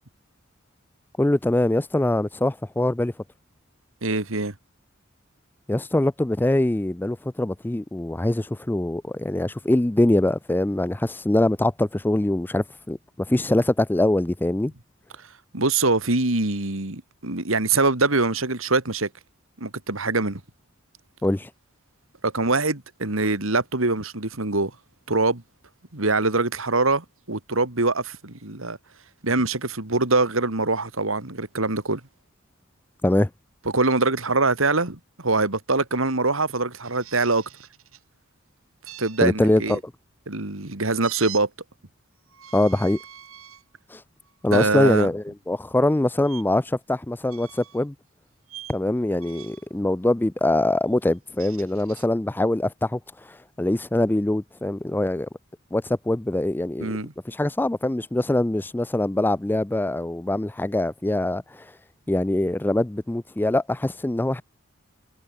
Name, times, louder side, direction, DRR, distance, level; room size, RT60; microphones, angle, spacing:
voice 1, 1.2-3.1 5.7-13.0 13.3-14.7 21.2-21.5 33.0-33.3 39.2-39.8 42.5-43.0 43.9-44.0 44.4-47.9 48.7-53.0 53.3-55.3 55.7-56.9 57.3-61.7 62.1-64.4, left 1 dB, 10° left, 0.4 m, -23 dB
voice 2, 4.0-4.5 15.5-19.1 19.6-20.4 22.2-24.7 25.1-25.4 25.9-28.8 29.2-32.0 33.7-37.4 39.0-39.8 40.3-41.5 44.5-45.1 56.8-57.1, right 3 dB, 70° right, 2.7 m, -23 dB
sound 1, 36.8-38.0 38.9-39.8 41.0-41.4 42.3-43.6 44.2-44.5 46.2-46.4 47.3-47.8 48.5-48.8 49.2-49.7 51.1-52.1, right 12 dB, 90° right, 6.5 m, -44 dB
head